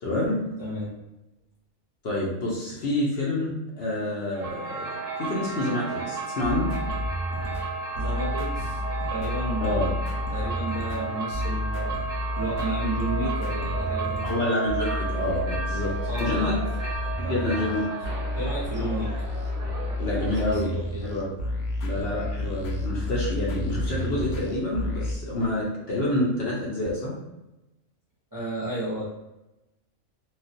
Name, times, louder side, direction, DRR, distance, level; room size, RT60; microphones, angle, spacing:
voice 1, 0.0-0.4 2.0-4.9 5.2-6.7 9.6-9.9 14.2-15.9 16.2-16.6 17.2-17.9 20.0-20.7 21.0-21.3 21.8-27.1, left 1 dB, 55° left, -4 dB, 0.8 m, -28 dB
voice 2, 0.6-0.9 8.0-8.8 9.1-12.0 12.3-14.3 16.1-16.7 17.2-17.8 18.3-19.1 20.1-20.2 20.5-21.1 28.3-29.1, right 1 dB, 20° right, -8 dB, 0.6 m, -33 dB
sound 1, 4.3-20.7, right 4 dB, 50° right, 0.8 m, -34 dB
sound 2, 6.4-25.1, left 2 dB, 80° left, 1.0 m, -31 dB
3.1 x 2.3 x 2.7 m, 0.96 s
omnidirectional pair, 1.4 m